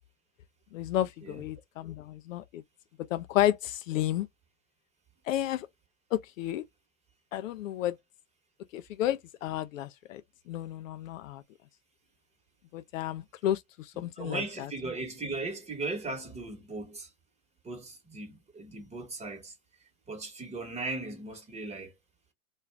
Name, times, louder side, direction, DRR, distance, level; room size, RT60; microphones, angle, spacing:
voice 1, 0.7-2.6 3.1-4.3 5.3-5.7 6.1-6.6 7.3-8.0 8.7-10.2 10.5-11.4 12.7-14.7, left 13 dB, 65° left, 0.5 m, -31 dB
voice 2, 14.2-17.1 17.6-19.5 20.1-21.9, right 3 dB, 15° right, 1.1 m, -37 dB
2.4 x 2.3 x 3.2 m
hypercardioid pair, 105°, 43 cm